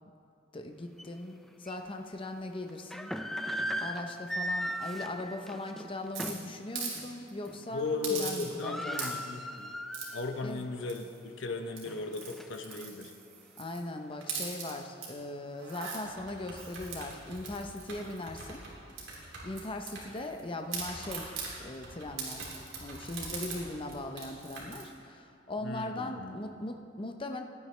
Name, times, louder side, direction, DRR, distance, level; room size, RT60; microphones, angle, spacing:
voice 1, 0.5-3.1 3.8-9.2 10.4-10.6 13.6-18.6 19.1-21.3 21.6-27.4, left 2 dB, 25° left, 5 dB, 0.7 m, -39 dB
sound 1, 1.0-1.1 1.7-1.8 2.7-6.5 6.9-7.1 7.5-7.9 8.1-8.2 8.4-10.4 10.8-10.9 11.5-12.8, equal, ahead, 0.4 m, -37 dB
sound 2, 6.1-7.0 7.3-7.5 8.0-8.7 8.9-9.4 9.9-10.2 10.9-11.3 11.7-13.8 14.2-15.1 15.5-16.0 16.6-18.6 19.0-20.4 20.7-21.5 22.2-23.6 23.9-24.0 24.2-24.8, right 5 dB, 90° right, 3.0 m, -41 dB
voice 2, 7.7-9.8 10.1-13.1 25.6-26.4, left 3 dB, 70° left, 5 dB, 0.8 m, -36 dB
sound 3, 16.0-20.3 20.6-24.7, right 2 dB, 65° right, 2.9 m, -47 dB
16.5 x 10.5 x 3.3 m, 2.5 s
head